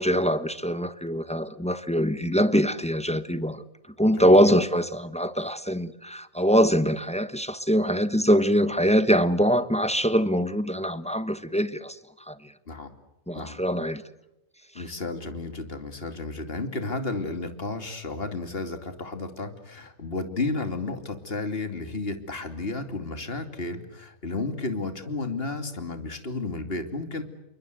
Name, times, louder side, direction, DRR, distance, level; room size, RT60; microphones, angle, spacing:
voice 1, 0.0-3.6 4.0-12.5 13.3-14.0 14.8-14.9, equal, 5° left, 1.0 m, -23 dB
voice 2, 4.2-4.5 12.7-12.9 13.3-13.6 14.7-27.2, left 3 dB, 40° left, 2.9 m, -32 dB
29.0 x 24.0 x 8.0 m
omnidirectional pair, 1.5 m